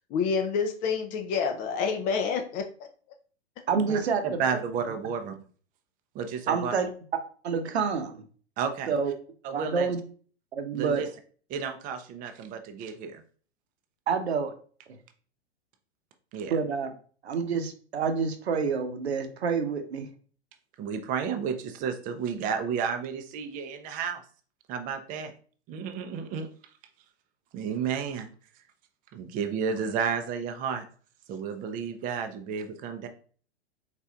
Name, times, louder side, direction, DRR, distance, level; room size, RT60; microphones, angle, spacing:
voice 1, 0.1-2.7, left 5 dB, 25° left, 5 dB, 0.5 m, -28 dB
voice 2, 3.7-4.4 6.5-6.9 7.4-8.2 8.9-9.1 9.5-10.0 10.5-11.0 14.1-14.5 16.5-16.9 17.2-20.1, right 5 dB, 70° right, 6 dB, 0.9 m, -28 dB
voice 3, 4.2-5.3 6.1-6.7 8.6-8.9 9.4-9.9 10.7-11.1 11.5-13.2 16.3-16.5 20.8-24.2 24.7-25.3 25.7-26.5 27.5-28.3 29.1-30.8 31.3-33.1, right 6 dB, 25° right, 7 dB, 0.5 m, -32 dB
4.2 x 4.1 x 2.3 m, 0.42 s
figure-of-eight pair, 100°, 34 cm